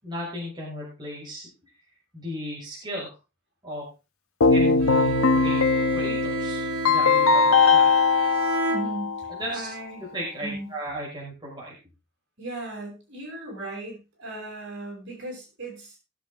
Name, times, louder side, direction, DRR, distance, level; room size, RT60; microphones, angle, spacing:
voice 1, 0.0-1.5 2.1-3.1 3.6-3.9 4.5-7.9 9.3-9.7 10.1-11.7, equal, 20° right, -5 dB, 5.9 m, -35 dB
Keyboard (musical), 4.4-9.4, left 4 dB, 70° left, 1.2 m, -20 dB
Bowed string instrument, 4.8-9.4, right 3 dB, 85° right, 2.2 m, -32 dB
voice 2, 8.7-10.1 10.4-10.7 12.4-16.0, right 2 dB, 55° right, 0 dB, 7.9 m, -37 dB
19.5 x 8.0 x 3.8 m, 0.30 s
head